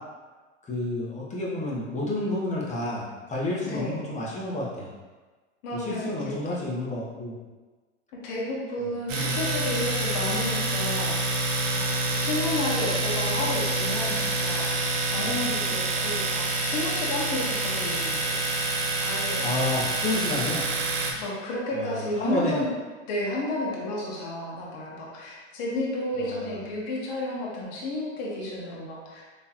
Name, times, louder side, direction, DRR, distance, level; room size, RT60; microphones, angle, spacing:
voice 1, 0.7-4.9 5.7-7.3 9.1-9.3 15.2-15.4 19.4-20.6 21.7-22.6 26.1-26.6, left 1 dB, 20° left, -5 dB, 1.0 m, -30 dB
voice 2, 3.7-4.0 5.6-6.3 8.2-11.5 11.8-18.3 19.0-19.4 21.2-22.7 23.1-29.2, left 1 dB, 55° left, -4 dB, 1.1 m, -32 dB
Domestic sounds home sounds, 9.1-21.1, right 2 dB, 90° right, 0.7 m, -27 dB
3.6 x 3.0 x 2.9 m, 1.3 s
hypercardioid pair, 105°, 37 cm